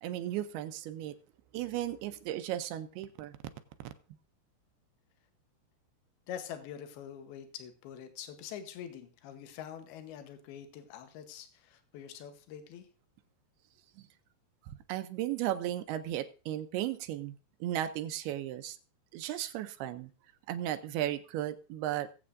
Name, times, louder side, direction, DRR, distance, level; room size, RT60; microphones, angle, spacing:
voice 1, 0.0-1.2 1.5-3.3 14.0-14.1 14.7-18.8 19.1-20.1 20.5-22.1, right 12 dB, 80° right, 2.5 m, -35 dB
voice 2, 6.3-12.9, left 9 dB, 75° left, 2.9 m, -45 dB
21.0 x 7.8 x 2.5 m
omnidirectional pair, 4.7 m